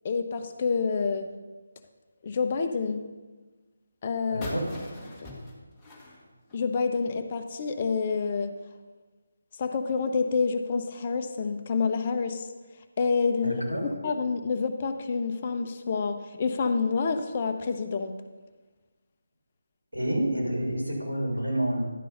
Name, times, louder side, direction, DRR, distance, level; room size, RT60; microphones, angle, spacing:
voice 1, 0.0-1.3 2.2-3.0 4.0-4.5 5.2-5.3 6.5-8.5 9.6-12.5 13.0-13.6 14.0-18.2, left 5 dB, 35° left, 7 dB, 0.7 m, -28 dB
voice 2, 4.3-4.7 13.4-13.9 19.9-21.8, right 1 dB, 85° right, -2 dB, 3.2 m, -28 dB
sound 1, 4.4-7.1, left 1 dB, 10° left, 1.2 m, -42 dB
11.0 x 5.4 x 5.4 m, 1.3 s
figure-of-eight pair, 155°, 0 cm